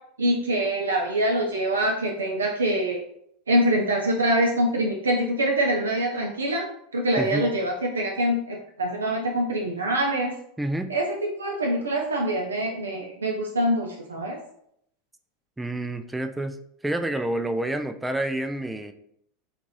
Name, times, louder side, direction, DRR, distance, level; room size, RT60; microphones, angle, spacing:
voice 1, 0.2-3.0 3.5-6.7 6.9-10.3 10.9-14.4, right 1 dB, 90° right, 0 dB, 0.4 m, -24 dB
voice 2, 7.2-7.5 10.6-10.9 15.6-18.9, right 1 dB, 10° right, 7 dB, 0.3 m, -28 dB
2.5 x 2.4 x 3.1 m, 0.71 s
hypercardioid pair, 85°, 0 cm